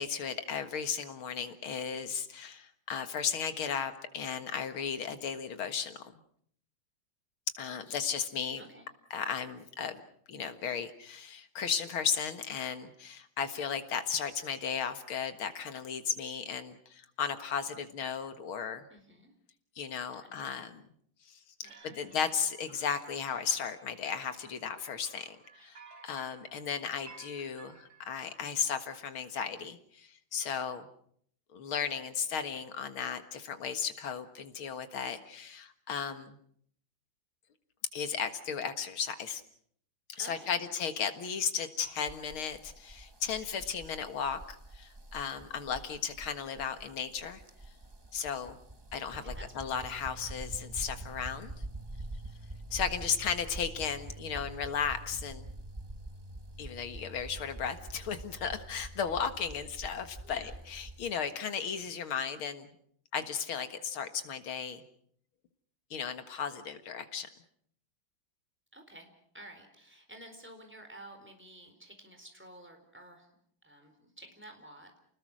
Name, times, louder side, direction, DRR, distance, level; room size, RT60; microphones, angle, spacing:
voice 1, 0.0-6.0 7.6-8.6 9.1-10.0 10.3-18.9 19.8-20.8 21.2-30.9 31.5-36.4 37.9-39.4 40.1-47.4 48.1-48.6 48.9-51.5 52.7-55.5 56.6-62.7 63.1-64.8 65.9-67.3, left 7 dB, 90° left, 9 dB, 2.5 m, -35 dB
voice 2, 8.6-8.9 18.9-19.3 20.2-20.4 21.6-22.3 40.2-40.6 49.1-49.7 53.0-53.1 60.2-60.6 68.7-69.1 69.3-73.4 73.6-75.0, right 1 dB, 5° right, 5 dB, 4.3 m, -52 dB
sound 1, 21.6-28.3, right 4 dB, 50° right, 4.4 m, -56 dB
sound 2, 42.1-61.1, right 2 dB, 20° right, 0.6 m, -46 dB
29.5 x 20.0 x 6.3 m, 0.65 s
omnidirectional pair, 2.2 m